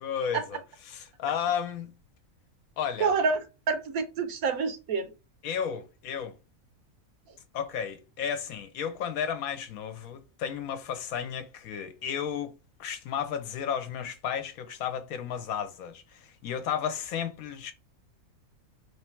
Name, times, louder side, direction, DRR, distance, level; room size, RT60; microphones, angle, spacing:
voice 1, 0.0-1.9 2.8-3.2 5.4-6.4 7.5-12.5 12.8-17.7, left 8 dB, 85° left, 1.2 m, -33 dB
voice 2, 3.0-5.1, right 5 dB, 85° right, 1.3 m, -28 dB
3.2 x 3.2 x 4.5 m
omnidirectional pair, 1.5 m